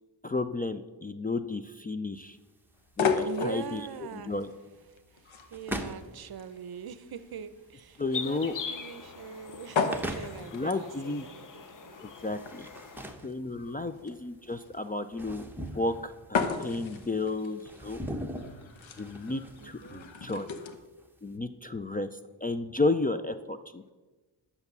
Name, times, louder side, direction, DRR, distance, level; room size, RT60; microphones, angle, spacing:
voice 1, 0.2-2.4 3.0-3.8 4.1-4.5 8.0-8.5 10.5-11.3 12.0-12.7 13.2-15.5 15.7-18.0 19.0-20.5 21.2-23.9, left 2 dB, 20° left, 10 dB, 0.3 m, -32 dB
sound 1, 2.2-21.3, right 1 dB, 5° right, 0.9 m, -43 dB
sound 2, 2.8-20.8, left 5 dB, 90° left, 1.1 m, -36 dB
voice 2, 3.2-4.6 4.9-12.2 13.1-13.2 13.9-14.0 19.6-20.2, right 7 dB, 55° right, 14 dB, 0.6 m, -43 dB
sound 3, 8.1-13.1, left 5 dB, 45° left, 0.8 m, -42 dB
10.5 x 7.0 x 6.7 m, 1.2 s
wide cardioid pair, 140°, 45 cm